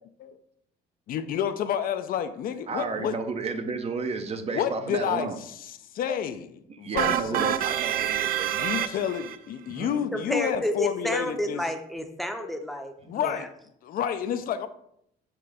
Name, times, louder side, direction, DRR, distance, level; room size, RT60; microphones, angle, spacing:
voice 1, 1.1-3.2 4.5-5.3 5.9-7.6 8.5-11.6 13.1-13.5 13.8-14.7, left 9 dB, 60° left, 10 dB, 0.5 m, -29 dB
voice 2, 2.7-5.4 6.7-8.9 9.7-10.0 13.0-13.1, right 4 dB, 35° right, 7 dB, 0.7 m, -32 dB
sound 1, 7.0-9.4, right 11 dB, 60° right, 0.4 m, -27 dB
voice 3, 10.1-13.5, equal, ahead, 5 dB, 0.7 m, -30 dB
5.9 x 3.3 x 4.9 m, 0.74 s
cardioid pair, 110°, 17 cm